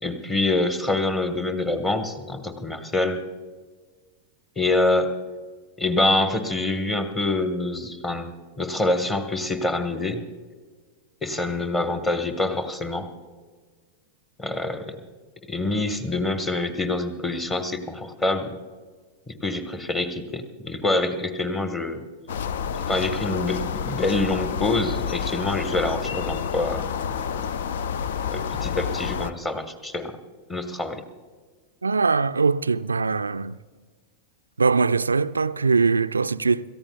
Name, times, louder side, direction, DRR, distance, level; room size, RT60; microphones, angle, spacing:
voice 1, 0.0-3.2 4.6-5.1 5.8-8.3 8.6-10.2 11.2-13.1 14.4-15.0 15.5-18.5 19.3-22.0 22.9-26.9 27.3-27.5 28.3-30.2 30.5-31.0, left 2 dB, 15° left, 1.5 m, -26 dB
sound 1, 22.3-29.3, left 7 dB, 60° left, 0.5 m, -29 dB
voice 2, 31.8-33.6 34.6-36.6, right 4 dB, 75° right, 0.3 m, -22 dB
27.0 x 14.5 x 2.4 m
figure-of-eight pair, 90°, 0 cm